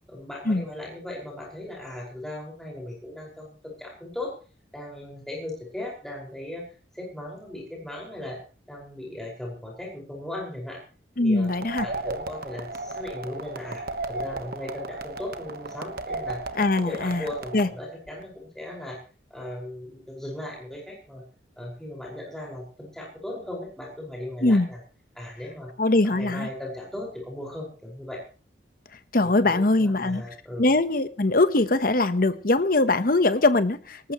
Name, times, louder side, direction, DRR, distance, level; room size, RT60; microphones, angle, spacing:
voice 1, 0.1-4.3 4.7-6.6 6.9-8.4 8.7-10.8 11.2-11.5 11.8-16.4 16.8-19.0 19.3-21.2 21.6-24.8 25.1-25.7 26.0-28.2 29.2-30.7, left 1 dB, ahead, -3 dB, 5.3 m, -37 dB
voice 2, 11.2-11.9 16.6-17.3 17.5-17.7 24.4-24.7 25.8-26.5 29.1-30.2 30.6-34.1, left 2 dB, 50° left, 12 dB, 1.0 m, -22 dB
sound 1, 11.5-17.7, right 3 dB, 55° right, 1.2 m, -35 dB
19.0 x 19.0 x 3.1 m, 0.36 s
head